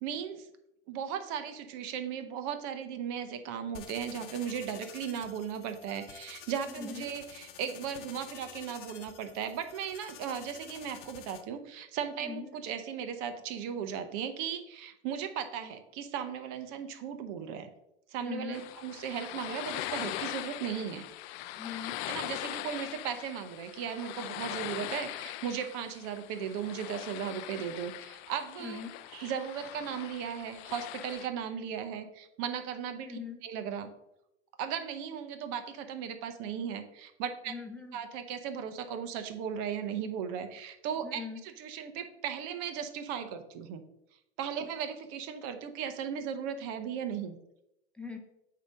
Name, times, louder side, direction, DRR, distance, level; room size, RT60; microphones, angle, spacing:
voice 1, 0.0-0.5 0.9-17.7 18.1-21.1 22.1-28.8 29.1-33.9 34.6-37.5 37.9-43.8 44.4-47.4, right 8 dB, 55° right, 9 dB, 0.8 m, -37 dB
sound 1, 3.7-11.4, left 10 dB, 80° left, 0.9 m, -49 dB
voice 2, 6.6-7.1 12.2-12.6 18.2-18.6 21.6-22.0 28.6-29.0 33.0-33.4 37.5-38.0 41.0-41.4 47.9-48.2, left 5 dB, 5° left, 4 dB, 0.7 m, -41 dB
sound 2, 18.5-31.3, left 15 dB, 60° left, 0.5 m, -41 dB
8.3 x 2.9 x 5.0 m, 0.83 s
hypercardioid pair, 100°, 35 cm